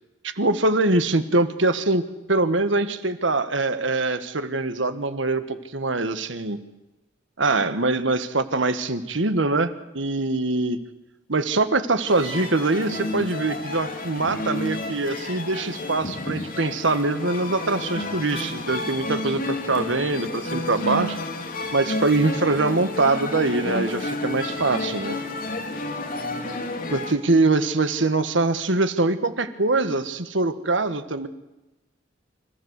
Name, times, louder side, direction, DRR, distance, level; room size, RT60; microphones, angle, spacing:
voice 1, 0.2-2.0 2.3-6.6 7.4-10.8 11.3-21.2 21.7-25.2 26.9-31.3, right 3 dB, 80° right, 11 dB, 1.5 m, -23 dB
sound 1, 12.1-27.1, left 2 dB, 50° left, 2.6 m, -31 dB
26.0 x 15.5 x 8.2 m, 1.0 s
head